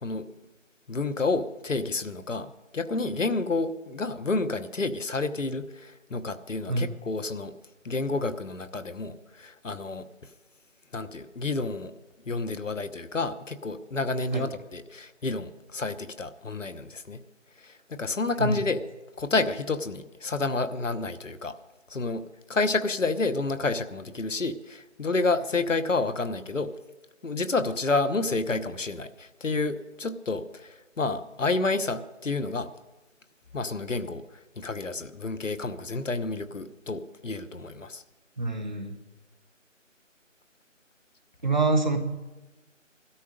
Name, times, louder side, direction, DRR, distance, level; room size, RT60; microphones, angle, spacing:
voice 1, 0.9-7.5 7.8-10.1 10.9-11.9 12.3-17.2 17.6-18.8 19.2-21.6 21.9-22.2 22.5-26.7 27.2-32.7 33.5-34.2 34.6-38.0, left 3 dB, 70° left, 11 dB, 1.1 m, -29 dB
voice 2, 38.4-38.9 41.4-42.0, right 3 dB, 35° right, 6 dB, 1.3 m, -25 dB
16.5 x 13.0 x 5.2 m, 1.1 s
figure-of-eight pair, 170°, 39 cm